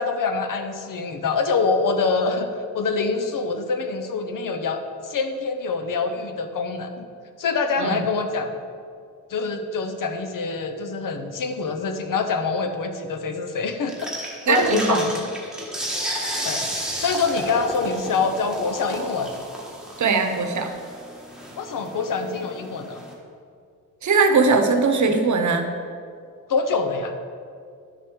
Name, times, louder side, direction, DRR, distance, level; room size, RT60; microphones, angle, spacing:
voice 1, 0.0-7.1 7.4-8.5 9.3-15.2 16.4-16.7 17.0-19.3 21.6-23.0 26.5-27.1, left 4 dB, 75° left, 6 dB, 0.9 m, -25 dB
sound 1, 13.9-23.1, equal, ahead, 1.2 m, -33 dB
voice 2, 14.5-15.0 20.0-20.7 24.0-25.7, right 4 dB, 60° right, 6 dB, 0.9 m, -20 dB
11.5 x 7.0 x 3.7 m, 2.3 s
wide cardioid pair, 180°, 33 cm